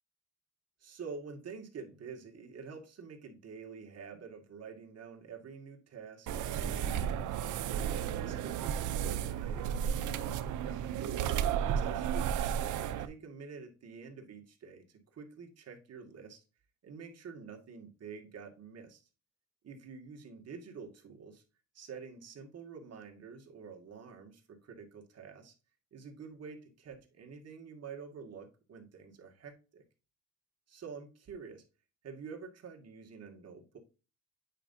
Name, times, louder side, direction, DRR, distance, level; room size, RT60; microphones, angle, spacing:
voice 1, 0.8-7.5 8.2-11.1 11.6-16.4 16.8-19.0 19.6-21.4 21.7-25.5 25.9-29.8 30.7-31.6 32.0-33.8, right 5 dB, 55° right, 3 dB, 2.1 m, -48 dB
sound 1, 6.3-13.1, right 9 dB, 80° right, 0.7 m, -33 dB
8.9 x 5.2 x 2.7 m, 0.32 s
cardioid pair, 90°, 30 cm